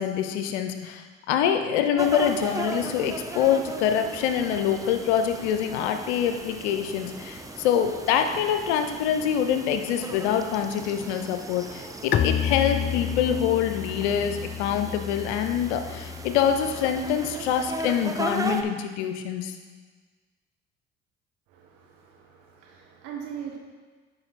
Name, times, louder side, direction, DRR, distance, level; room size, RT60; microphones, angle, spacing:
voice 1, 0.0-19.5, left 8 dB, 80° left, 7 dB, 0.7 m, -25 dB
sound 1, 2.0-18.6, right 2 dB, 10° right, 0.6 m, -37 dB
Bowed string instrument, 12.1-17.7, left 9 dB, 35° left, 0.5 m, -31 dB
voice 2, 21.5-23.6, right 8 dB, 75° right, 0 dB, 1.5 m, -40 dB
7.8 x 5.3 x 4.2 m, 1.4 s
hypercardioid pair, 60°, 33 cm